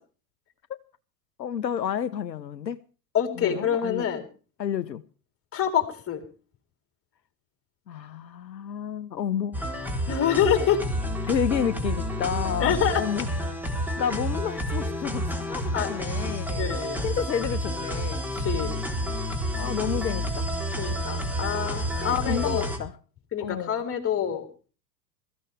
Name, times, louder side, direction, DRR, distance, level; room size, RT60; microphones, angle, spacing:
voice 1, 1.4-2.8 3.4-4.1 4.6-5.0 7.9-9.6 11.3-13.3 14.0-16.7 17.0-18.2 19.6-20.5 22.0-22.9 23.4-23.8, left 8 dB, 80° left, 0.8 m, -30 dB
voice 2, 3.1-4.3 5.5-6.2 10.1-10.8 12.6-13.0 15.7-16.0 16.5-17.0 18.3-18.7 20.8-22.7 23.3-24.5, left 9 dB, 25° left, 4.0 m, -26 dB
sound 1, 9.5-22.8, equal, 5° right, 3.5 m, -29 dB
22.0 x 14.5 x 3.5 m
figure-of-eight pair, 85°, 50 cm